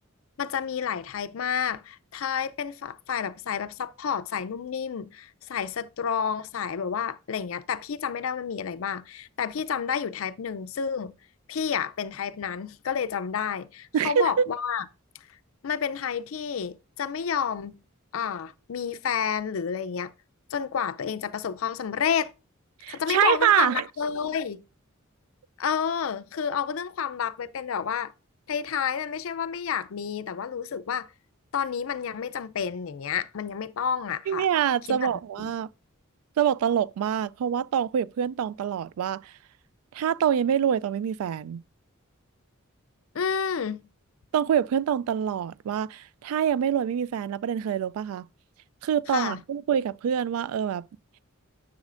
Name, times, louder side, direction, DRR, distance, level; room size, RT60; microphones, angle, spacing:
voice 1, 0.4-11.2 11.5-14.8 15.6-17.8 18.1-20.1 20.5-22.3 22.9-24.6 25.6-28.1 28.5-31.1 31.5-34.5 34.9-35.1 35.4-35.5 43.1-43.9 49.1-49.4, left 7 dB, 70° left, 0.4 m, -30 dB
voice 2, 13.9-14.5 22.8-23.8 34.3-35.7 36.4-39.3 39.9-41.6 44.3-48.3 48.8-50.9, right 8 dB, 85° right, 0.3 m, -25 dB
10.5 x 6.3 x 2.5 m
head